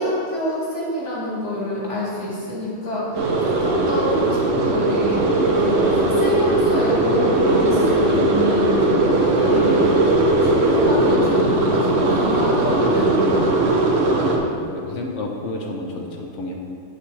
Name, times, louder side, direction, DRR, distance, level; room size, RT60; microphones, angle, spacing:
voice 1, 0.0-5.2 5.6-10.0 10.4-13.2, left 1 dB, 70° left, -6 dB, 2.5 m, -26 dB
sound 1, 3.1-14.4, right 2 dB, 55° right, 1.1 m, -18 dB
voice 2, 14.5-16.5, left 2 dB, 55° left, 1 dB, 1.0 m, -31 dB
8.4 x 7.6 x 3.4 m, 2.4 s
omnidirectional pair, 1.7 m